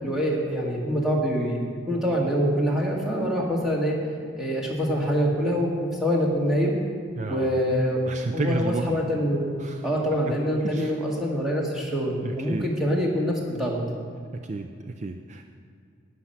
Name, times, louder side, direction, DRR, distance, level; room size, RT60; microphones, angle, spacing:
voice 1, 0.0-1.6 1.9-4.0 4.4-6.8 7.3-8.0 8.3-9.5 9.8-13.8, equal, ahead, -3 dB, 2.0 m, -25 dB
voice 2, 7.2-7.6 8.1-9.0 9.6-9.9 10.3-10.9 12.2-12.7 14.3-15.4, right 3 dB, 40° right, 7 dB, 0.4 m, -32 dB
12.0 x 9.6 x 5.7 m, 2.3 s
head